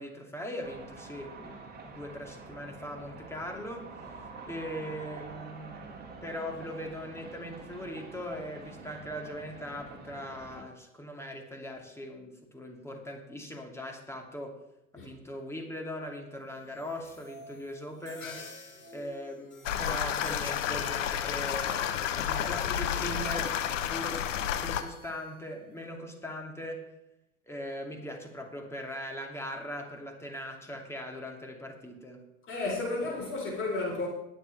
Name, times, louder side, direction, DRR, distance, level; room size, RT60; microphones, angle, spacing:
voice 1, 0.0-1.6 1.9-3.9 4.5-14.6 14.9-18.5 18.9-24.3 24.6-26.9 27.5-32.2 33.0-33.1, equal, 5° left, 2.7 m, -40 dB
sound 1, 0.6-10.6, right 3 dB, 25° right, 2.8 m, -47 dB
sound 2, 16.4-25.9, left 4 dB, 80° left, 3.5 m, -51 dB
sound 3, 19.6-24.8, left 9 dB, 65° left, 1.2 m, -31 dB
voice 2, 32.5-34.1, left 2 dB, 30° left, 4.5 m, -32 dB
21.0 x 7.8 x 3.5 m
figure-of-eight pair, 85°, 40 cm